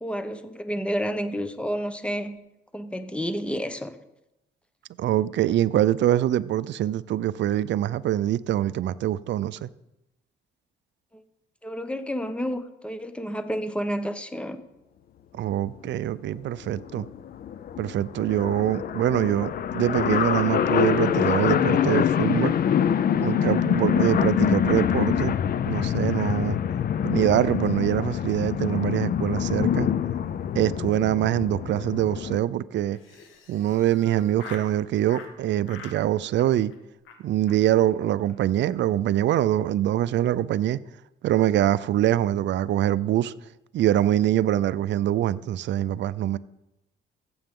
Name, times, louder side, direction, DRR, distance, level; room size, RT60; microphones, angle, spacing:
voice 1, 0.0-2.4 2.7-3.9 11.6-14.6, equal, 5° left, 0.9 m, -30 dB
voice 2, 5.0-9.7 15.3-17.1 17.8-22.5 23.2-25.4 25.7-26.6 27.0-29.9 30.5-33.0 33.5-36.7 37.2-40.8 41.2-43.3 43.7-46.4, right 12 dB, 65° right, 0.5 m, -24 dB
sound 1, 15.9-16.0 16.3-16.4 16.5-32.4, left 9 dB, 50° left, 0.5 m, -25 dB
Laughter, 32.9-34.7 35.1-35.3 35.6-36.0 36.3-36.8 37.0-37.2 37.5-37.6 37.8-37.9 38.2-38.3 38.6-38.9, left 5 dB, 90° left, 1.4 m, -45 dB
15.0 x 7.8 x 3.7 m
cardioid pair, 90°, 20 cm